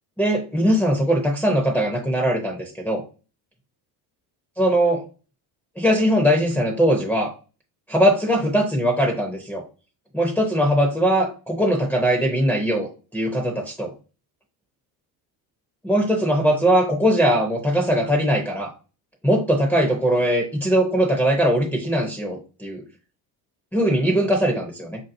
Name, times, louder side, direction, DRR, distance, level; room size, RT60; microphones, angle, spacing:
voice 1, 0.2-3.0 4.6-5.0 5.8-7.3 7.9-9.6 10.1-13.9 15.8-18.7 19.2-22.8 23.7-25.0, equal, 5° left, -2 dB, 0.7 m, -20 dB
4.5 x 2.8 x 2.6 m, 0.34 s
cardioid pair, 120°, 41 cm